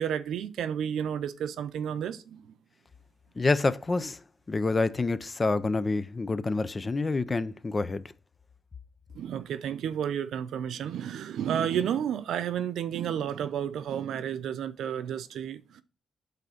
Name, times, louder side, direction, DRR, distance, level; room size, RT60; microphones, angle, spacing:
voice 1, 0.0-2.5 9.1-15.8, right 9 dB, 80° right, 0.6 m, -31 dB
voice 2, 3.4-4.2 4.5-8.0, left 3 dB, 20° left, 0.4 m, -27 dB
8.4 x 4.0 x 4.9 m
wide cardioid pair, 170°, 0 cm